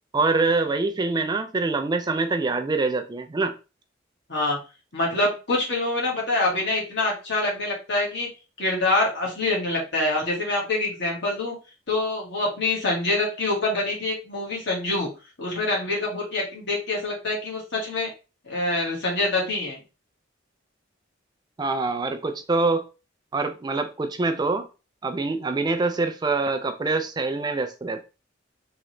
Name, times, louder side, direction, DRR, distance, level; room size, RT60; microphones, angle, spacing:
voice 1, 0.1-3.5 21.6-22.8 23.3-24.7 25.0-28.1, right 3 dB, 20° right, 0.3 m, -25 dB
voice 2, 4.9-8.3 8.6-11.6 11.9-15.1 15.4-18.1 18.4-19.8, left 2 dB, 60° left, 1.7 m, -25 dB
3.7 x 2.9 x 3.2 m
head